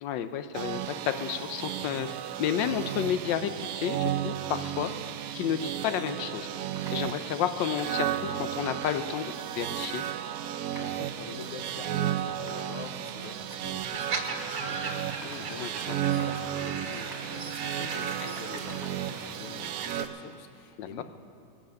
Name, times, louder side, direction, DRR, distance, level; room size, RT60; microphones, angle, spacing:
voice 1, 0.0-2.1 2.4-3.5 3.8-4.9 5.3-6.5 6.9-10.0 15.6-16.0 20.8-21.0, left 9 dB, 80° left, 9 dB, 1.3 m, -31 dB
sound 1, 0.5-20.1, right 11 dB, 75° right, 0.8 m, -34 dB
sound 2, 4.1-20.1, left 1 dB, 25° left, 3.0 m, -51 dB
voice 2, 10.5-21.0, left 4 dB, 55° left, 7 dB, 1.0 m, -45 dB
sound 3, 13.8-20.1, right 4 dB, 55° right, 1.7 m, -38 dB
20.0 x 7.7 x 6.4 m, 2.4 s
omnidirectional pair, 2.0 m